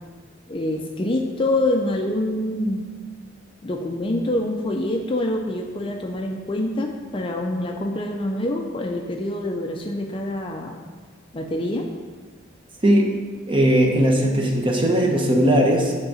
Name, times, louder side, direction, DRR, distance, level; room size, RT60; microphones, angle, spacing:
voice 1, 0.5-2.8 3.6-10.8 11.3-11.9, left 1 dB, 25° left, 2 dB, 0.4 m, -25 dB
voice 2, 12.8-13.1 13.5-15.9, equal, 25° right, 0 dB, 0.9 m, -18 dB
7.7 x 3.7 x 6.2 m, 1.5 s
head